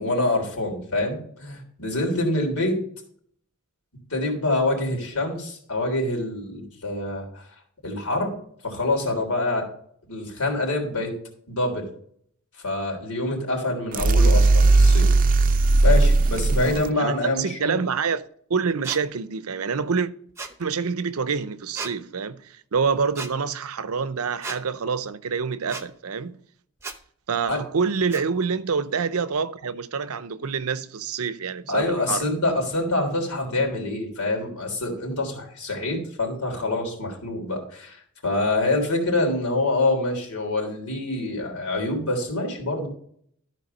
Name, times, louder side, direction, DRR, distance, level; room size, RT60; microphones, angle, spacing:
voice 1, 0.0-2.8 4.1-7.5 7.8-8.3 8.6-9.7 10.1-11.1 11.5-11.9 12.6-15.1 15.8-17.8 27.5-27.6 31.7-42.9, left 2 dB, 90° left, 3.6 m, -26 dB
sound 1, 13.9-16.9, right 3 dB, 40° right, 0.5 m, -17 dB
voice 2, 17.0-18.2 18.5-20.1 20.6-26.3 27.3-32.3, right 5 dB, 80° right, 0.6 m, -26 dB
sound 2, 18.8-19.0 20.4-20.6 21.7-21.9 23.1-23.3 24.4-24.6 25.7-25.9 26.8-27.0 28.1-28.2, right 3 dB, 10° right, 0.8 m, -34 dB
13.5 x 4.6 x 5.4 m
head